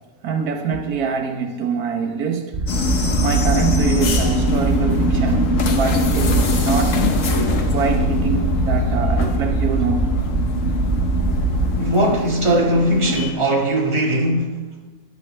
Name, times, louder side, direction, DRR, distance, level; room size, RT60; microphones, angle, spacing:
voice 1, 0.2-2.5 3.2-7.0 7.7-10.1, right 6 dB, 80° right, 1.4 m, -24 dB
sound 1, 2.5-11.8, right 3 dB, 45° right, 0.9 m, -22 dB
sound 2, 2.7-13.3, left 4 dB, 60° left, 1.4 m, -23 dB
voice 2, 11.8-14.6, right 1 dB, 20° right, 1.7 m, -19 dB
14.5 x 10.5 x 3.3 m
omnidirectional pair, 1.6 m